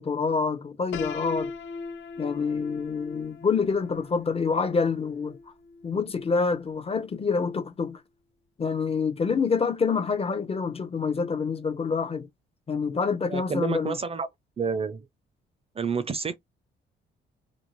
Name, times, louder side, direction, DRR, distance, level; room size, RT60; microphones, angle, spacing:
voice 1, 0.0-1.5 2.2-5.4 5.8-8.0 8.6-12.3 12.7-13.9, left 5 dB, 30° left, 0.6 m, -27 dB
Piano, 0.9-6.8, left 4 dB, 75° left, 0.7 m, -39 dB
voice 2, 13.3-14.3 14.6-15.0 15.8-16.4, right 5 dB, 30° right, 0.5 m, -29 dB
2.6 x 2.0 x 3.0 m
cardioid pair, 90°, 20 cm